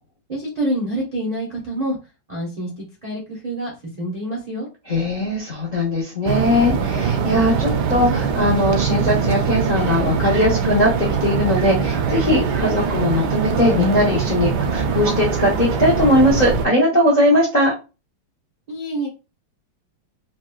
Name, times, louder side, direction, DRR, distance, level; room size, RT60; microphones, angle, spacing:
voice 1, 0.3-2.0 2.3-4.7 18.7-19.1, right 1 dB, 90° right, -3 dB, 0.3 m, -27 dB
voice 2, 4.9-17.7, left 1 dB, 80° left, -2 dB, 0.4 m, -19 dB
sound 1, 6.3-16.7, right 6 dB, 75° right, 1.0 m, -22 dB
4.0 x 2.1 x 2.3 m, 0.30 s
omnidirectional pair, 2.1 m